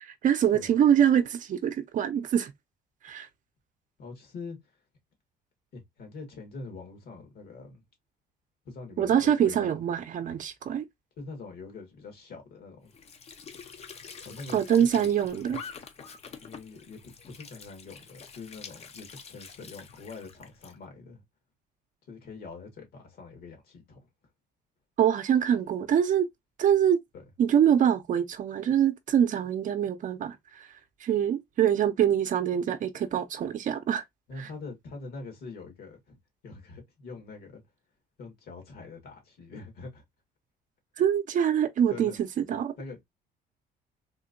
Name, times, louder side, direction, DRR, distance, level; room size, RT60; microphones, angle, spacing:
voice 1, 0.0-2.5 3.0-3.3 9.0-10.8 14.5-15.6 25.0-26.3 26.6-27.0 27.4-30.7 31.0-34.0 41.0-42.1 42.5-42.7, right 9 dB, 50° right, 0.6 m, -24 dB
voice 2, 4.0-4.6 5.7-7.8 8.7-9.7 11.2-12.9 14.2-15.1 16.4-17.0 17.3-21.2 22.1-24.0 34.3-36.2 36.4-37.6 38.2-40.0 41.9-42.2 42.8-43.0, left 3 dB, 65° left, 2.0 m, -44 dB
Squeak / Sink (filling or washing) / Trickle dribble, 12.9-20.8, left 6 dB, 40° left, 0.7 m, -46 dB
3.7 x 2.7 x 2.5 m
cardioid pair, 110°, 17 cm